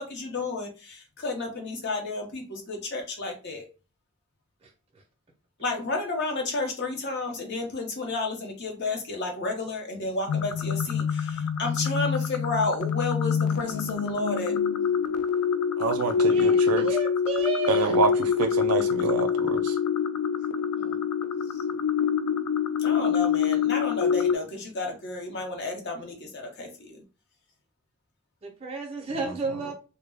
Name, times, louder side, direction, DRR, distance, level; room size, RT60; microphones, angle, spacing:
voice 1, 0.0-3.7 5.6-14.6 20.8-21.0 22.8-27.0, left 3 dB, 50° left, 0.6 m, -32 dB
sound 1, 10.3-24.4, left 7 dB, 85° left, 0.3 m, -26 dB
voice 2, 15.8-17.0 17.7-19.8, right 4 dB, 90° right, 0.5 m, -27 dB
voice 3, 16.3-18.0 28.4-29.7, right 2 dB, 25° right, 0.5 m, -32 dB
2.2 x 2.0 x 3.2 m
head